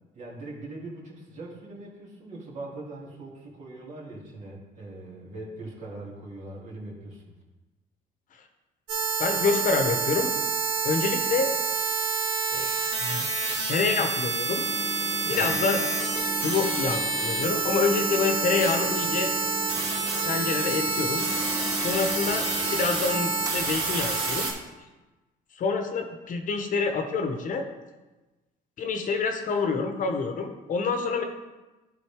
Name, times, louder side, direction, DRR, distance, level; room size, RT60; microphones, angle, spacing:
voice 1, 0.1-7.3 15.2-15.5, right 2 dB, 45° right, -3 dB, 2.5 m, -41 dB
sound 1, 8.9-24.5, right 4 dB, 75° right, 2.1 m, -28 dB
voice 2, 9.2-10.3 10.8-11.5 12.5-12.7 13.0-13.2 13.7-14.6 15.3-15.8 16.4-19.3 20.2-21.3 21.7-22.4 22.7-24.5 25.5-27.7 28.8-31.2, left 4 dB, 50° left, 5 dB, 0.9 m, -27 dB
sound 2, 14.5-24.3, equal, 20° right, 0.7 m, -38 dB
11.5 x 4.0 x 3.5 m, 1.1 s
cardioid pair, 110°, 17 cm